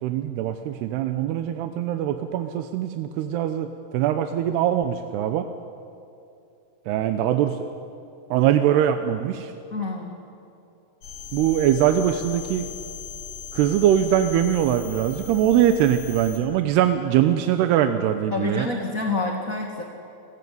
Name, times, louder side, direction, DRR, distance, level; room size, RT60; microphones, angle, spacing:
voice 1, 0.0-5.5 6.9-7.6 8.3-9.5 11.3-12.7 13.5-18.7, right 10 dB, 85° right, 8 dB, 3.0 m, -22 dB
voice 2, 9.7-10.1 18.3-19.8, left 3 dB, 30° left, 1 dB, 1.7 m, -27 dB
sound 1, 11.0-16.4, left 7 dB, 50° left, 4.8 m, -39 dB
29.5 x 19.0 x 9.5 m, 2.7 s
omnidirectional pair, 4.6 m